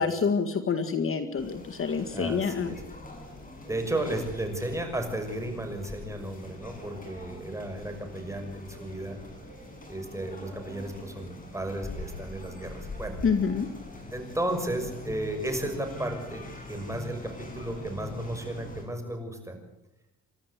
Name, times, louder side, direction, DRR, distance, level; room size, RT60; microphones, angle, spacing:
voice 1, 0.0-2.8 13.2-13.7, left 5 dB, 45° left, 8 dB, 2.0 m, -27 dB
sound 1, 1.4-18.8, left 1 dB, 25° left, 8.0 m, -43 dB
voice 2, 2.1-2.8 3.7-9.2 9.9-13.2 14.1-19.6, right 1 dB, 10° right, 5 dB, 6.1 m, -34 dB
28.5 x 13.0 x 8.3 m, 0.91 s
cardioid pair, 90°, 30 cm